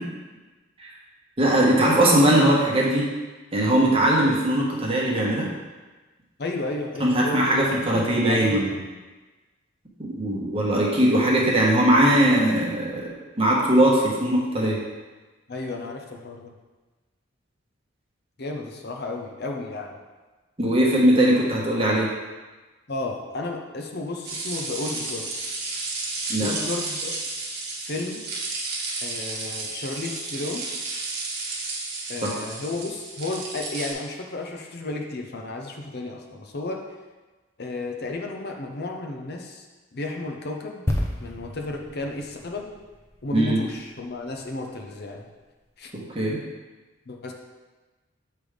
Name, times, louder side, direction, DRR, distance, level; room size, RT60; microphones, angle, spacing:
voice 1, 1.4-3.1 3.5-5.5 7.0-8.8 10.2-13.1 13.4-14.8 20.6-22.1 26.3-26.5 32.2-32.3 43.3-43.6 45.9-46.4, right 1 dB, 25° right, -3 dB, 1.2 m, -20 dB
voice 2, 6.4-8.8 15.5-16.5 18.4-20.0 22.9-25.3 26.4-27.2 27.8-28.2 29.0-30.7 32.1-36.9 37.6-39.7 39.9-40.8 41.2-42.7 43.2-45.3 45.8-45.9 47.1-47.3, left 2 dB, 50° left, 2 dB, 0.7 m, -33 dB
sound 1, 24.3-33.9, right 3 dB, 50° right, 1.2 m, -32 dB
sound 2, 40.9-44.5 44.8-45.0, left 1 dB, 15° left, 0.6 m, -32 dB
7.9 x 3.4 x 5.0 m, 1.2 s
head